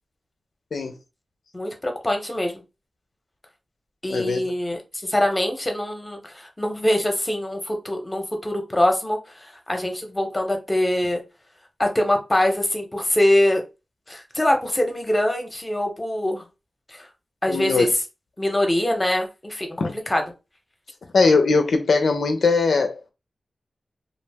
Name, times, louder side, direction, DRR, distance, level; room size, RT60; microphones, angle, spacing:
voice 1, 1.5-2.6 4.0-11.2 11.8-13.6 14.1-16.5 16.9-17.1 17.4-17.9 18.4-20.2, left 1 dB, 20° left, 0.7 m, -23 dB
voice 2, 4.1-4.4 17.5-17.9 19.8-19.9 21.1-23.1, left 4 dB, 85° left, 0.4 m, -20 dB
2.4 x 2.0 x 3.3 m
wide cardioid pair, 75°, 0 cm